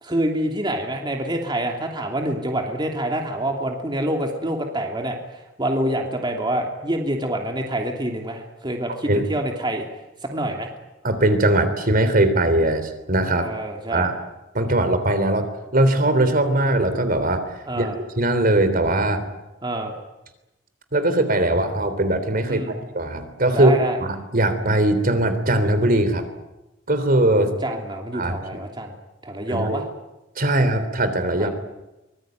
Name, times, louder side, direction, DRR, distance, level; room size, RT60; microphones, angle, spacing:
voice 1, 0.0-9.9 10.2-10.7 13.4-14.1 17.7-18.0 19.6-20.0 22.5-22.7 23.5-24.0 27.3-29.0 29.2-29.8 31.4-31.5, right 1 dB, 25° right, 2 dB, 2.9 m, -26 dB
voice 2, 11.0-13.5 13.9-14.1 14.5-15.5 15.7-17.9 18.2-19.2 20.9-23.7 24.0-26.2 26.9-27.5 28.1-28.6 29.5-29.8 30.4-31.5, right 1 dB, 50° right, 10 dB, 3.5 m, -20 dB
24.5 x 21.5 x 9.3 m, 0.99 s
head